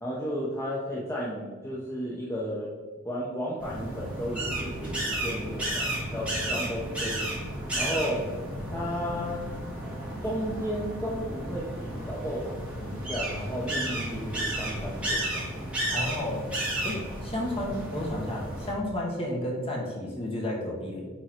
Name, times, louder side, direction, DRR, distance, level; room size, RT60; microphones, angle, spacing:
voice 1, 0.0-2.7 3.0-7.3 7.8-8.3 8.7-9.4 10.2-15.5, equal, 15° left, -6 dB, 0.9 m, -33 dB
sound 1, 3.6-18.7, right 1 dB, 5° right, 1.9 m, -33 dB
voice 2, 15.9-16.4 16.8-21.1, left 1 dB, 30° left, -2 dB, 1.6 m, -32 dB
9.0 x 3.9 x 4.4 m, 1.4 s
head